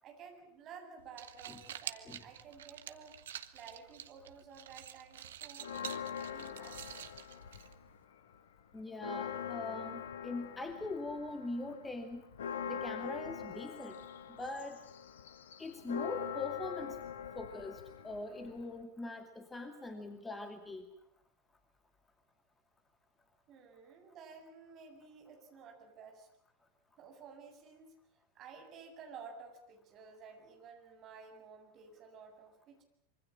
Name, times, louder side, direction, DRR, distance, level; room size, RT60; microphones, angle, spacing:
voice 1, 0.0-3.2 3.5-6.9 23.5-26.3 27.0-27.9 28.3-32.8, right 5 dB, 35° right, 4 dB, 7.5 m, -53 dB
sound 1, 1.0-8.0, right 10 dB, 60° right, 1.5 m, -48 dB
Church bell, 5.6-8.0 8.3-8.4 8.8-18.8, left 8 dB, 60° left, 1.6 m, -43 dB
voice 2, 8.7-12.2 12.7-14.0 14.3-14.9 15.6-17.0 17.4-20.9, left 2 dB, 10° left, 8 dB, 2.4 m, -42 dB
25.5 x 24.5 x 7.4 m, 0.70 s
figure-of-eight pair, 90°, 0 cm